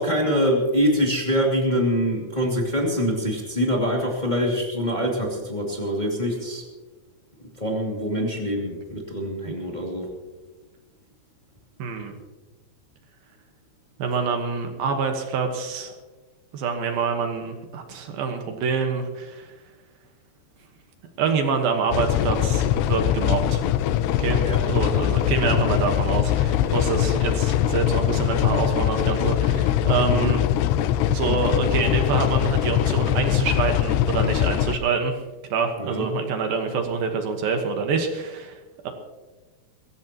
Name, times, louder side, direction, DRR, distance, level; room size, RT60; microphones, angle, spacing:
voice 1, 0.0-6.6 7.5-10.1 24.4-24.6 30.1-30.3 35.8-36.1, equal, 20° left, -2 dB, 1.0 m, -24 dB
voice 2, 11.8-12.1 14.0-15.9 16.5-19.5 21.2-23.6 24.2-30.4 31.1-35.2 35.5-38.6 38.8-38.9, right 5 dB, 65° right, 5 dB, 2.6 m, -26 dB
sound 1, 21.9-34.8, left 11 dB, 90° left, 2.5 m, -22 dB
23.0 x 15.0 x 3.0 m, 1.2 s
omnidirectional pair, 5.5 m